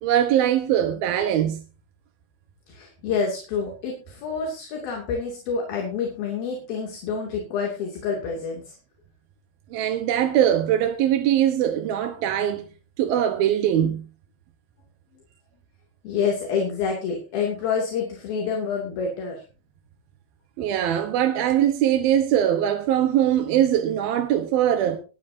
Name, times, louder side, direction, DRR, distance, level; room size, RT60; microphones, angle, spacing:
voice 1, 0.0-1.6 9.7-12.6 13.0-14.1 20.6-25.0, right 10 dB, 75° right, 3.0 m, -21 dB
voice 2, 2.7-8.6 16.0-19.4, left 5 dB, 70° left, 4.6 m, -28 dB
22.0 x 10.5 x 2.8 m
omnidirectional pair, 4.5 m